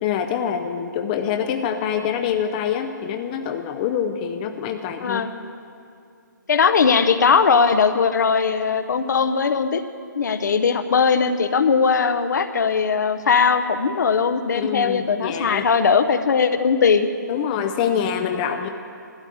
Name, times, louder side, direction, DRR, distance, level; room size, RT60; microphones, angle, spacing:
voice 1, 0.0-5.3 14.5-15.7 17.3-18.7, left 8 dB, 25° left, 6 dB, 0.5 m, -25 dB
voice 2, 5.0-5.3 6.5-9.8 10.1-17.1, left 5 dB, 60° left, 9 dB, 0.8 m, -19 dB
12.5 x 7.9 x 8.3 m, 2.4 s
figure-of-eight pair, 145°, 11 cm